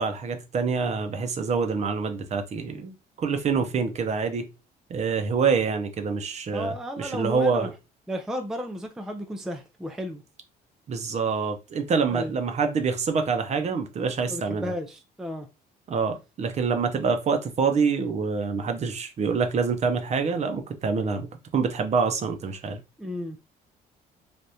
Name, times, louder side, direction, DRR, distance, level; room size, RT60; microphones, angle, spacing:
voice 1, 0.0-4.5 4.9-7.7 10.9-14.7 15.9-22.8, right 5 dB, 40° right, 0.6 m, -26 dB
voice 2, 6.5-7.7 8.1-10.2 12.1-12.4 14.3-15.5 23.0-23.4, equal, 5° right, 0.4 m, -33 dB
3.4 x 2.5 x 2.7 m
cardioid pair, 110°, 17 cm